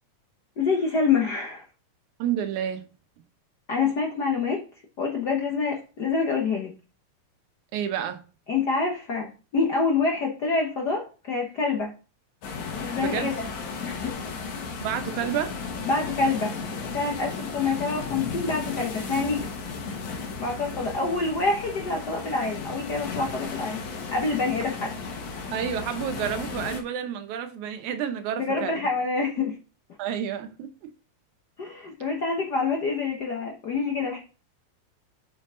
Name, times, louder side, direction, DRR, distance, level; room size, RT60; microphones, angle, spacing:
voice 1, 0.6-1.6 3.7-4.6 5.0-6.7 8.5-11.9 12.8-13.4 13.8-14.2 15.8-16.5 16.8-19.5 20.4-23.8 24.1-24.9 28.4-29.6 31.6-34.2, left 4 dB, 60° left, 1.1 m, -26 dB
voice 2, 2.2-2.9 7.7-8.2 13.0-13.3 14.8-15.5 25.5-28.9 30.0-30.9, right 9 dB, 90° right, 2.3 m, -30 dB
sound 1, 12.4-26.8, left 4 dB, 75° left, 2.8 m, -35 dB
7.8 x 5.6 x 3.7 m
omnidirectional pair, 3.3 m